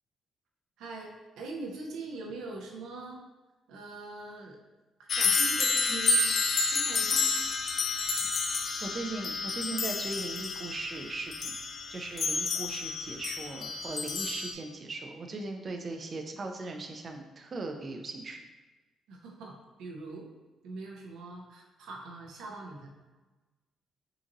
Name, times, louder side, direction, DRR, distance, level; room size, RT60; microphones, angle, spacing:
voice 1, 0.8-3.2 3.7-4.6 5.0-6.3 6.7-7.4 19.1-20.3 20.6-22.9, right 3 dB, 85° right, 0 dB, 0.6 m, -42 dB
sound 1, 5.1-14.5, left 4 dB, 55° left, 0.4 m, -30 dB
voice 2, 8.8-11.6 11.9-18.4, right 3 dB, 40° right, 4 dB, 0.4 m, -38 dB
3.8 x 2.8 x 2.6 m, 1.2 s
cardioid pair, 90°, 0 cm